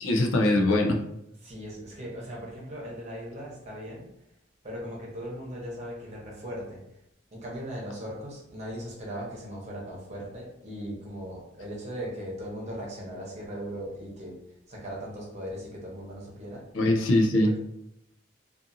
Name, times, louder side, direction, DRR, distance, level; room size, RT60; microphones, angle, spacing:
voice 1, 0.0-1.0 16.7-17.6, left 1 dB, 85° left, 3 dB, 0.4 m, -22 dB
voice 2, 1.4-4.1 4.6-6.8 7.3-14.4 14.7-16.7, equal, 35° right, -4 dB, 0.9 m, -38 dB
2.5 x 2.4 x 2.6 m, 0.79 s
head